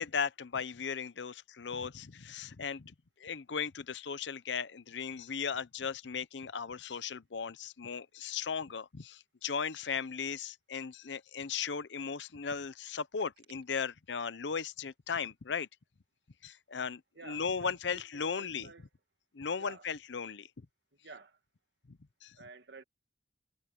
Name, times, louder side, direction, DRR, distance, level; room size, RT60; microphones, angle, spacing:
voice 1, 0.0-15.7 16.4-18.7 19.3-20.5 21.9-22.4, left 6 dB, 75° left, 0.7 m, -37 dB
voice 2, 17.2-17.7 18.1-18.9 19.6-19.9 21.0-21.4 22.4-22.8, right 4 dB, 65° right, 2.0 m, -51 dB
head